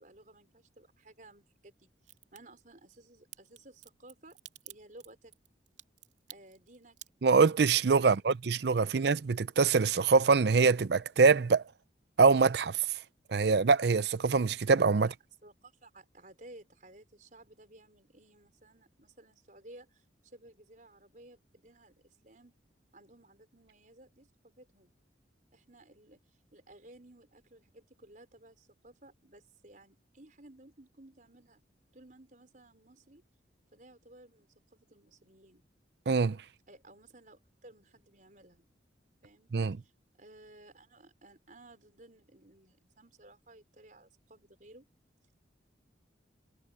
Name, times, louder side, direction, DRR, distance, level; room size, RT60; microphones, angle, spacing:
voice 1, 0.0-4.4 4.6-5.3 6.3-7.0 8.9-9.0 14.9-15.1 15.4-22.5 22.9-24.9 25.5-26.2 26.5-31.6 31.9-33.2 33.7-35.7 36.7-38.6 39.2-39.5 39.8-39.9 40.2-44.9, right 1 dB, 45° right, 5.0 m, -56 dB
Crack, 2.0-2.4 3.3-9.6 9.9-10.5 10.8-10.9, right 14 dB, 85° right, 2.7 m, -52 dB
voice 2, 7.2-11.6 12.2-12.9 13.3-15.1 36.1-36.4 39.5-39.8, right 4 dB, 60° right, 0.5 m, -24 dB
head